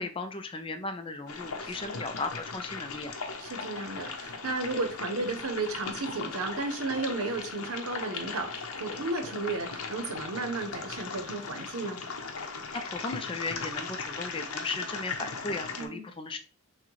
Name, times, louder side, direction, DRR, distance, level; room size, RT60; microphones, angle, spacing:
voice 1, 0.0-3.2 12.7-16.4, left 3 dB, 25° left, 0.4 m, -36 dB
sound 1, 1.3-15.9, left 4 dB, 80° left, 0.7 m, -38 dB
voice 2, 1.6-2.0 3.4-12.0 15.8-16.0, right 3 dB, 80° right, 0.8 m, -34 dB
5.9 x 2.2 x 3.1 m
head